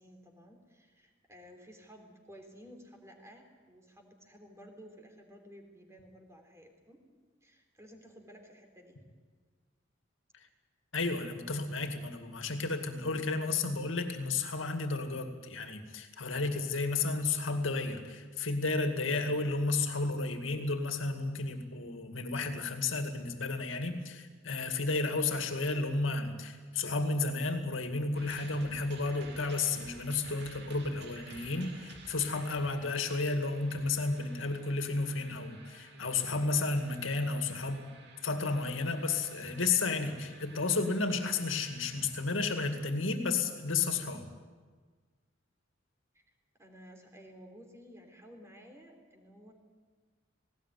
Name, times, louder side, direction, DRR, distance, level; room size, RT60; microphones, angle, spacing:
voice 1, 0.0-7.0 7.4-9.0 46.1-49.5, equal, 15° right, 3 dB, 3.6 m, -54 dB
voice 2, 10.9-37.9 38.2-44.2, left 3 dB, 85° left, 6 dB, 2.3 m, -32 dB
sound 1, 28.1-42.5, right 3 dB, 60° right, 2.9 m, -53 dB
19.0 x 18.0 x 9.4 m, 1.5 s
head